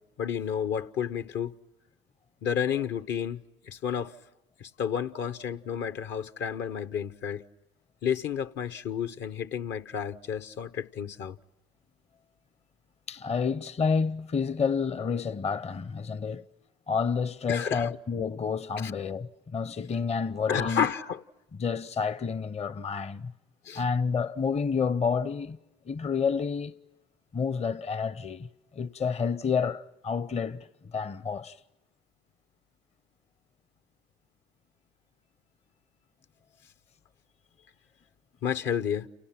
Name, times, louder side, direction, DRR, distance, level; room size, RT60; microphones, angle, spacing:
voice 1, 0.2-1.5 2.4-4.1 4.6-7.4 8.0-11.4 17.5-17.9 18.8-18.9 20.5-21.2 23.6-23.8 38.4-39.1, left 8 dB, 60° left, 1.0 m, -31 dB
voice 2, 13.1-16.4 16.9-20.9 21.6-23.3 23.7-25.6 25.9-26.8 27.3-31.6, left 5 dB, 30° left, 0.8 m, -29 dB
30.0 x 28.5 x 5.9 m
hypercardioid pair, 70°, 21 cm